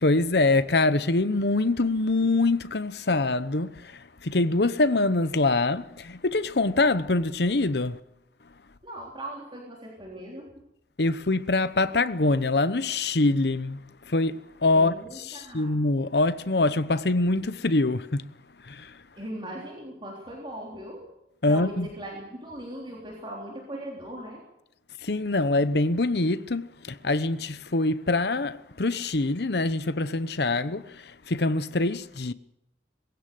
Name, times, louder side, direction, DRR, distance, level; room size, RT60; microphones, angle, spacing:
voice 1, 0.0-8.0 11.0-13.8 14.1-18.3 18.6-18.9 21.4-21.9 25.0-32.3, left 2 dB, 65° left, 1.0 m, -24 dB
voice 2, 8.8-10.5 14.8-15.8 19.2-21.1 21.4-24.4, right 1 dB, 30° right, 3.6 m, -39 dB
21.5 x 16.0 x 7.8 m
head